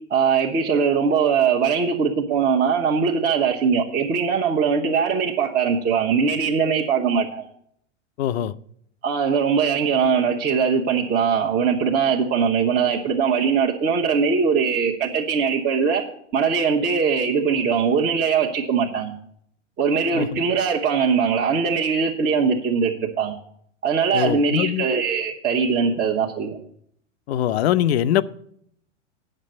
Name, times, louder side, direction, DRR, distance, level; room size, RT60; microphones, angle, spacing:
voice 1, 0.1-7.4 9.0-16.0 16.3-19.1 19.8-23.4 23.8-26.6, right 6 dB, 25° right, -2 dB, 1.1 m, -21 dB
voice 2, 8.2-8.5 20.1-20.4 24.1-24.8 27.3-28.2, left 11 dB, 60° left, 16 dB, 0.6 m, -22 dB
8.8 x 6.6 x 7.7 m, 0.67 s
hypercardioid pair, 110°, 37 cm